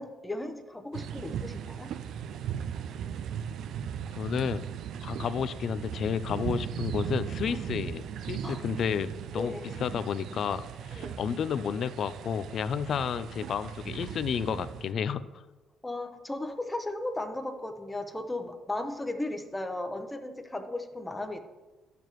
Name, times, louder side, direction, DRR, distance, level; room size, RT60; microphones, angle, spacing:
voice 1, 0.0-1.9 8.4-8.6 9.3-9.7 10.9-11.2 15.8-21.4, left 2 dB, 10° left, 6 dB, 0.8 m, -36 dB
sound 1, 0.9-14.9, right 8 dB, 70° right, 0.4 m, -37 dB
voice 2, 4.2-4.6 5.0-9.5 9.8-15.4, left 7 dB, 55° left, 14 dB, 0.4 m, -31 dB
12.0 x 6.7 x 3.1 m, 1.1 s
cardioid pair, 120°, 0 cm